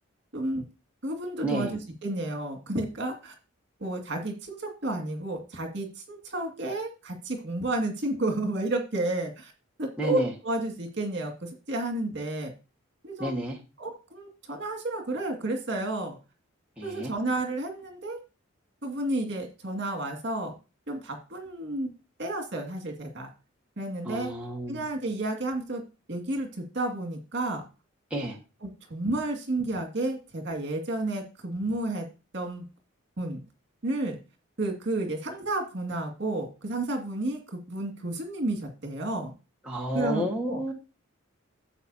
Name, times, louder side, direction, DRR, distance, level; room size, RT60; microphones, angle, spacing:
voice 1, 0.3-0.6 1.0-3.3 3.8-9.5 9.8-12.5 13.0-13.3 13.8-16.2 16.8-18.2 18.8-20.5 20.9-21.9 22.2-23.3 23.8-24.3 24.7-25.8 26.1-26.5 26.7-27.6 28.6-32.1 32.3-32.6 33.2-33.4 33.8-34.2 34.6-39.3 39.9-40.6, right 2 dB, 55° right, 3 dB, 2.2 m, -31 dB
voice 2, 10.0-10.3 13.2-13.6 16.8-17.1 24.0-24.8 28.1-28.4 39.6-40.7, right 1 dB, 5° right, -3 dB, 1.6 m, -31 dB
12.0 x 8.0 x 2.8 m, 0.31 s
head